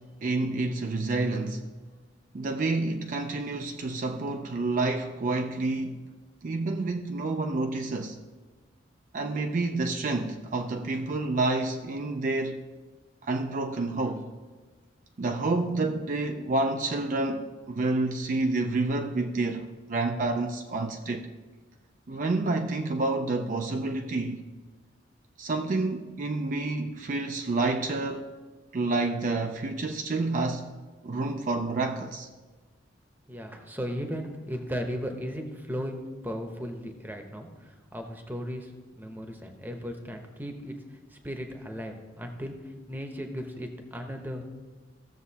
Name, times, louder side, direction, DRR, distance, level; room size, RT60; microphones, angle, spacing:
voice 1, 0.0-1.7 2.3-6.0 6.4-8.2 9.1-12.6 13.2-14.3 15.2-21.3 22.1-24.4 25.4-28.3 28.7-30.7 31.0-32.3, right 2 dB, 45° right, 0.4 m, -29 dB
voice 2, 33.3-44.4, equal, 10° right, 0.8 m, -36 dB
15.5 x 6.9 x 2.8 m
head